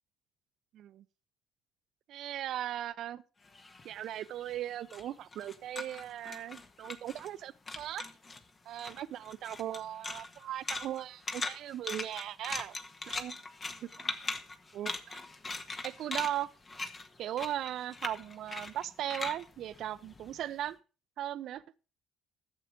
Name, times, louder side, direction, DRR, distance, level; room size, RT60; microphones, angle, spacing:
voice 1, 0.7-1.0 2.1-3.2 3.8-8.1 8.7-12.8 13.1-13.4 13.8-13.9 14.2-14.3 14.7-15.2 15.8-16.5 17.2-20.8 21.2-21.6, right 12 dB, 60° right, 0.7 m, -38 dB
sound 1, 3.5-7.4 7.7-8.4 8.8-20.6, left 3 dB, 30° left, 1.6 m, -41 dB
13.5 x 7.2 x 5.0 m
hypercardioid pair, 55°, 0 cm